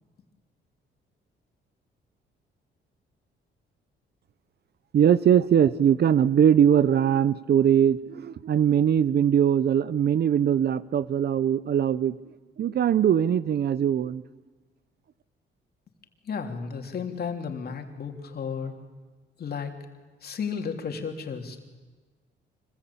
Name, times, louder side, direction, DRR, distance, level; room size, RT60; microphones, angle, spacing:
voice 1, 4.9-12.1 12.6-14.2, right 9 dB, 55° right, 17 dB, 0.8 m, -21 dB
voice 2, 16.3-18.7 19.4-19.7 20.2-21.6, left 6 dB, 50° left, 4 dB, 3.3 m, -33 dB
25.5 x 21.0 x 8.7 m, 1.3 s
cardioid pair, 90°, 20 cm